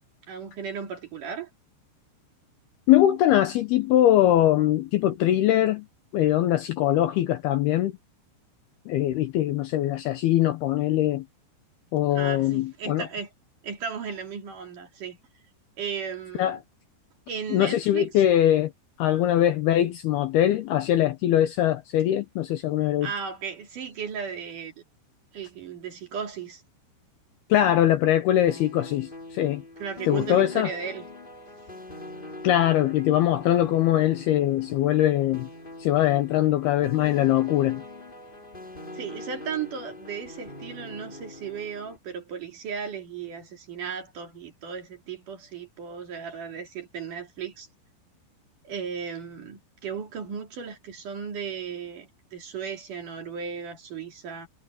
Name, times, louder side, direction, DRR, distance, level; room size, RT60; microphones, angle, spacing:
voice 1, 0.3-1.5 12.1-13.3 13.6-15.2 15.8-16.6 17.3-18.1 23.0-24.7 25.3-26.6 29.8-31.1 38.9-47.7 48.6-54.5, right 6 dB, 50° right, 3.7 m, -35 dB
voice 2, 2.9-5.9 6.1-7.9 8.9-11.2 11.9-13.0 16.4-16.6 17.5-18.7 19.0-23.1 27.5-29.6 30.1-30.7 32.4-35.5 35.8-37.8, left 12 dB, 75° left, 2.5 m, -22 dB
sound 1, 28.5-42.0, left 2 dB, 10° left, 3.0 m, -43 dB
omnidirectional pair, 5.4 m